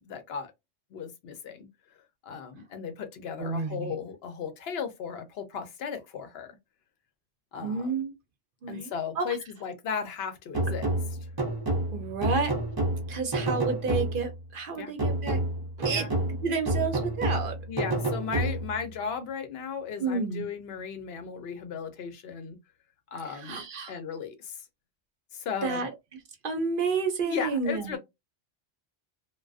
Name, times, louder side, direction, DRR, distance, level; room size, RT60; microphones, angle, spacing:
voice 1, 0.0-0.5 0.9-1.7 2.2-6.5 7.5-7.9 8.7-10.9 11.2-11.3 14.8-14.9 15.9-16.1 17.7-22.6 23.1-24.6 25.3-25.9 27.3-28.0, left 6 dB, 75° left, 0.8 m, -36 dB
voice 2, 3.4-4.0 7.6-8.1 8.6-9.4 11.9-12.6 13.1-15.4 15.8-16.1 16.4-17.6 20.0-20.5 23.3-23.9 25.6-25.9 26.4-28.0, right 4 dB, 60° right, 0.7 m, -30 dB
sound 1, 10.5-14.4 15.0-18.9, right 1 dB, 30° right, 0.5 m, -29 dB
2.3 x 2.3 x 2.3 m
omnidirectional pair, 1.1 m